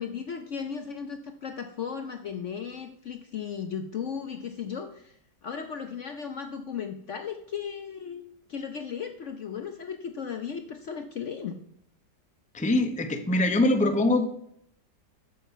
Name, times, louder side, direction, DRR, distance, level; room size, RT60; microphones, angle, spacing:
voice 1, 0.0-11.6, left 7 dB, 60° left, 7 dB, 0.9 m, -36 dB
voice 2, 12.5-14.2, left 2 dB, 5° left, 6 dB, 0.7 m, -23 dB
8.3 x 6.9 x 7.3 m, 0.71 s
omnidirectional pair, 1.8 m